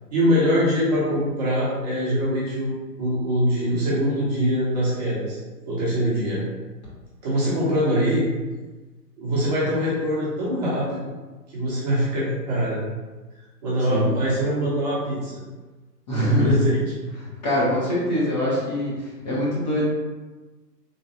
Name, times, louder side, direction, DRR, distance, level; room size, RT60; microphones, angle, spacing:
voice 1, 0.1-5.4 5.6-6.4 7.2-8.3 9.2-11.0 11.5-12.8 13.6-15.4 16.3-16.8, equal, 25° right, -8 dB, 0.9 m, -23 dB
voice 2, 16.1-16.6 17.4-19.8, left 1 dB, 25° left, -7 dB, 0.9 m, -23 dB
3.2 x 3.2 x 2.7 m, 1.2 s
figure-of-eight pair, 135°, 49 cm